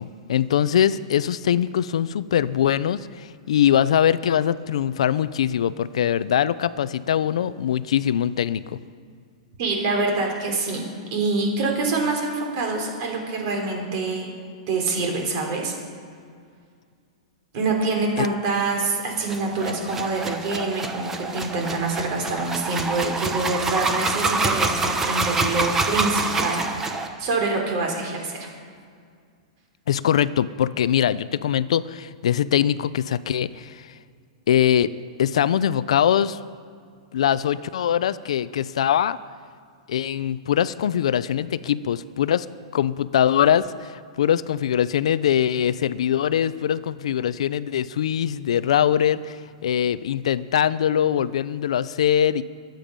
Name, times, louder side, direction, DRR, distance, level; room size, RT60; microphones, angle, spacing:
voice 1, 0.0-8.8 18.2-18.3 29.9-33.9 34.5-34.9 35.2-36.4 37.1-39.2 39.9-42.5 42.7-52.4, left 9 dB, 70° left, 16 dB, 0.6 m, -22 dB
voice 2, 9.6-14.3 14.7-15.7 17.5-28.5, right 3 dB, 35° right, 1 dB, 3.5 m, -26 dB
sound 1, 19.2-27.1, right 3 dB, 10° right, 0.9 m, -26 dB
22.5 x 9.1 x 5.3 m, 2.1 s
supercardioid pair, 170°, 3 cm